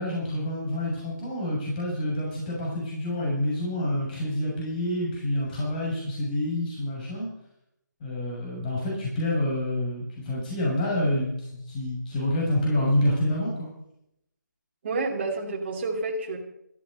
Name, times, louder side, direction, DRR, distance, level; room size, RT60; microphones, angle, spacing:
voice 1, 0.0-7.3 8.0-13.7, left 1 dB, 25° left, -4 dB, 7.0 m, -27 dB
voice 2, 14.8-16.4, right 3 dB, 35° right, 2 dB, 2.9 m, -29 dB
14.0 x 12.5 x 5.5 m, 0.77 s
figure-of-eight pair, 160°, 10 cm